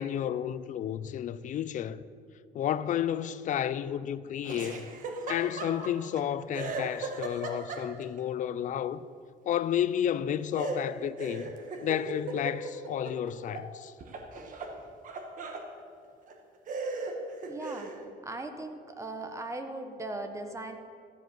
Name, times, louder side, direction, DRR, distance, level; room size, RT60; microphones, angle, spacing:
voice 1, 0.0-2.0 2.5-4.9 5.3-9.0 9.5-11.5 11.8-13.9, left 10 dB, 50° left, 0.5 m, -31 dB
Laughter, 4.4-6.2 6.5-8.2 10.6-13.7 14.0-15.7 16.3-16.4 16.7-18.0, right 3 dB, 50° right, 1.3 m, -37 dB
voice 2, 17.5-17.9 18.2-20.8, right 2 dB, 15° right, 1.1 m, -38 dB
13.5 x 5.0 x 7.8 m
cardioid pair, 110°, 17 cm